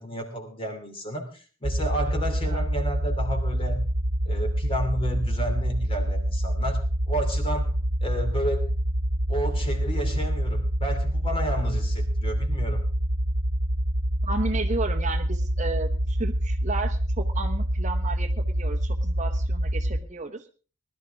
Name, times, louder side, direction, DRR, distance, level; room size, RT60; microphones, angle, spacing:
voice 1, 0.0-3.8 4.3-7.7 8.0-8.6 9.3-12.9, equal, 25° left, 5 dB, 2.8 m, -32 dB
sound 1, 1.6-20.0, right 1 dB, 55° right, 1.3 m, -26 dB
voice 2, 14.2-20.5, right 3 dB, 35° right, 5 dB, 1.0 m, -33 dB
20.0 x 12.0 x 3.5 m, 0.35 s
head